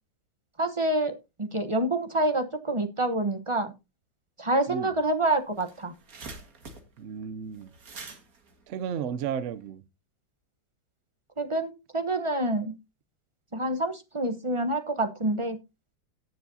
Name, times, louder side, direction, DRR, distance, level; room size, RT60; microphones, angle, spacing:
voice 1, 0.6-3.7 4.4-5.9 11.4-12.7 13.5-15.6, right 1 dB, 25° right, 0.6 m, -27 dB
sound 1, 5.0-5.1 5.4-9.6, right 3 dB, 50° right, 2.1 m, -46 dB
voice 2, 7.0-7.7 8.7-9.8, right 7 dB, 75° right, 0.6 m, -33 dB
17.5 x 7.1 x 2.7 m
omnidirectional pair, 2.0 m